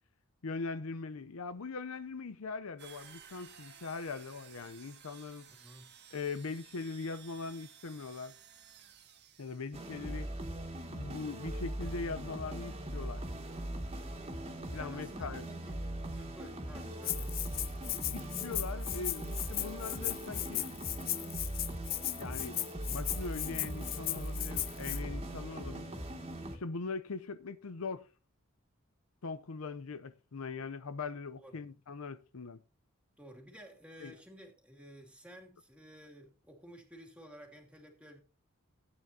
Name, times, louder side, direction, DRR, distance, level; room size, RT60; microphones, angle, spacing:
voice 1, 0.4-5.5 6.1-8.4 9.4-10.3 10.9-13.2 14.7-15.4 17.9-20.7 22.2-22.6 22.9-25.9 26.5-28.1 29.2-32.6 34.0-34.2, left 4 dB, 85° left, 0.6 m, -41 dB
sound 1, 2.8-9.9, right 8 dB, 55° right, 1.6 m, -56 dB
voice 2, 5.5-5.9 14.8-15.7 16.1-17.5 31.4-31.6 33.2-38.2, equal, 5° right, 2.4 m, -53 dB
sound 2, 9.7-26.6, right 1 dB, 30° right, 2.0 m, -40 dB
Rattle (instrument), 17.0-25.0, left 14 dB, 45° left, 0.6 m, -37 dB
15.5 x 9.1 x 2.7 m
head